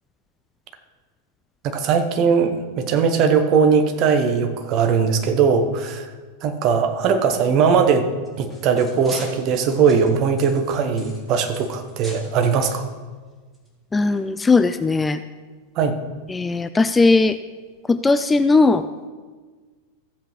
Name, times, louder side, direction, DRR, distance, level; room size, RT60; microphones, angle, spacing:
voice 1, 1.6-6.1 6.4-8.1 8.4-12.9 15.8-16.0, right 6 dB, 40° right, 7 dB, 1.0 m, -19 dB
sound 1, 8.1-12.3 12.6-12.8 13.5-13.7 14.2-14.3, equal, 5° right, 2.1 m, -41 dB
voice 2, 13.9-15.2 16.3-17.4 17.9-18.9, left 3 dB, 10° left, 11 dB, 0.3 m, -18 dB
14.5 x 7.8 x 3.2 m, 1.4 s
figure-of-eight pair, 90°, 0 cm